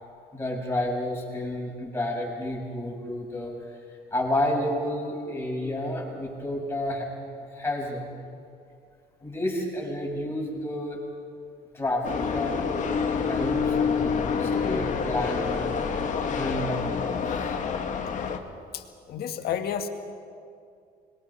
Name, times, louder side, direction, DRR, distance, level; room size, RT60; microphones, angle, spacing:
voice 1, 0.3-3.5 4.1-7.1 7.5-8.1 9.2-11.0 11.7-17.6, left 1 dB, 15° left, -2 dB, 6.1 m, -31 dB
sound 1, 12.0-18.4, left 6 dB, 50° left, 1.9 m, -27 dB
voice 2, 18.7-19.9, left 8 dB, 65° left, 6 dB, 1.9 m, -31 dB
26.0 x 21.5 x 5.7 m, 2.3 s
cardioid pair, 110°, 17 cm